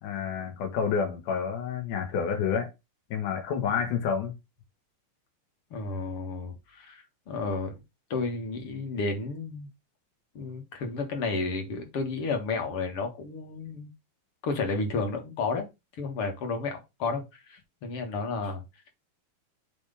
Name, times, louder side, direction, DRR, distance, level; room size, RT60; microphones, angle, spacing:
voice 1, 0.0-2.7 3.1-4.3, left 7 dB, 85° left, 3.1 m, -29 dB
voice 2, 5.7-7.8 8.1-9.7 10.4-13.9 14.4-15.7 16.0-18.6, left 3 dB, 50° left, 2.3 m, -32 dB
8.0 x 3.5 x 5.1 m
omnidirectional pair, 3.6 m